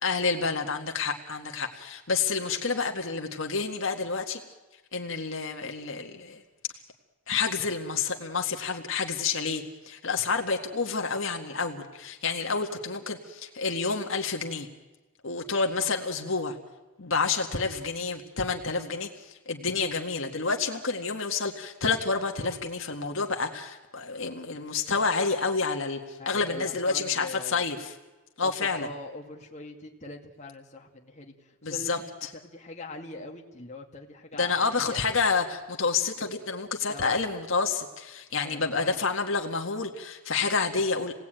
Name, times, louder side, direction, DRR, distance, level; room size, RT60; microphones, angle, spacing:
voice 1, 0.0-4.4 4.9-6.4 7.3-14.7 15.2-16.6 17.0-28.0 28.4-28.9 31.6-32.3 34.3-41.1, left 4 dB, 60° left, 3 dB, 1.9 m, -29 dB
voice 2, 26.2-27.6 28.4-35.0 36.9-37.3 38.3-39.0, left 2 dB, 35° left, 1 dB, 2.2 m, -42 dB
28.5 x 18.5 x 9.1 m, 1.2 s
head